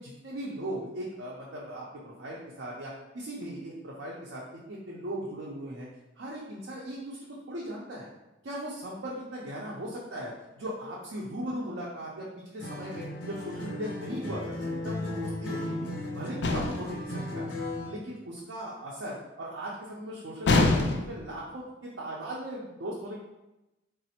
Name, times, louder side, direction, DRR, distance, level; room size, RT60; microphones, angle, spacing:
voice 1, 0.0-5.9 6.2-8.1 8.4-15.9 16.1-23.2, right 1 dB, 90° right, -5 dB, 0.5 m, -38 dB
Acoustic guitar, 12.6-18.0, left 1 dB, 85° left, 0.7 m, -36 dB
sound 1, 16.4-17.0 20.5-21.3, left 2 dB, 65° left, 0.3 m, -24 dB
4.0 x 2.0 x 2.8 m, 0.98 s
head